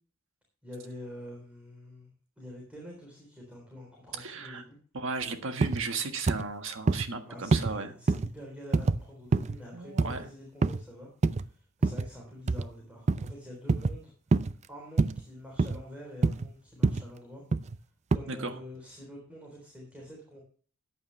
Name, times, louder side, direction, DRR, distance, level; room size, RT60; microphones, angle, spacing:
voice 1, 0.6-2.1 2.4-4.8 7.3-11.1 11.4-17.4 18.1-20.4, equal, 5° right, -2 dB, 3.7 m, -46 dB
voice 2, 4.1-4.6 4.9-7.9 9.7-10.3 18.3-18.5, right 4 dB, 65° right, 7 dB, 1.6 m, -35 dB
sound 1, 5.6-5.8 6.3-6.5 6.9-7.1 7.5-7.7 8.1-8.3 8.7-9.0 9.3-9.6 10.0-10.2 10.6-10.8 11.2-11.4 11.8-12.1 12.5-12.7 13.1-13.3 13.7-14.0 14.3-14.5 15.0-15.2 15.6-15.8 16.2-16.5 16.8-17.1 17.5-17.8 18.1-18.2, right 3 dB, 35° right, 0.4 m, -26 dB
14.0 x 9.5 x 3.3 m, 0.43 s
head